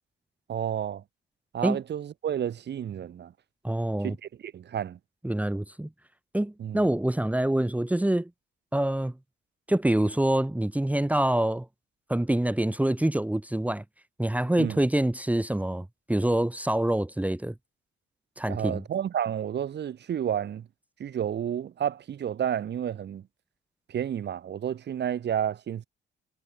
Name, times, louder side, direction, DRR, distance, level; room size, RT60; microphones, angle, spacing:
voice 1, 0.5-1.0 1.5-3.3 4.0-5.0 6.6-6.8 14.6-14.8 18.5-20.7 21.0-23.3 23.9-25.9, right 9 dB, 60° right, 2.7 m, -31 dB
voice 2, 3.6-4.2 5.2-5.9 6.3-8.3 8.7-9.1 9.7-11.7 12.1-13.8 14.2-17.5 18.4-18.8, right 1 dB, 5° right, 2.0 m, -26 dB
cardioid pair, 90°, 20 cm